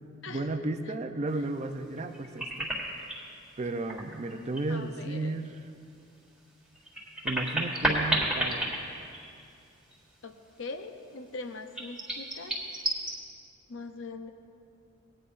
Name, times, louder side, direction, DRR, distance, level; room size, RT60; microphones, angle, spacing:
voice 1, 0.3-2.7 3.6-5.6 7.2-8.7, right 2 dB, 35° right, 7 dB, 0.5 m, -33 dB
sound 1, 2.0-3.3 3.8-4.8 5.1-5.2 6.7-9.6 9.9-10.0 11.7-13.1, right 1 dB, 5° right, 1.7 m, -31 dB
voice 2, 4.7-5.4 10.2-12.6 13.7-14.3, left 3 dB, 65° left, 7 dB, 0.6 m, -41 dB
20.0 x 9.7 x 2.5 m, 2.5 s
head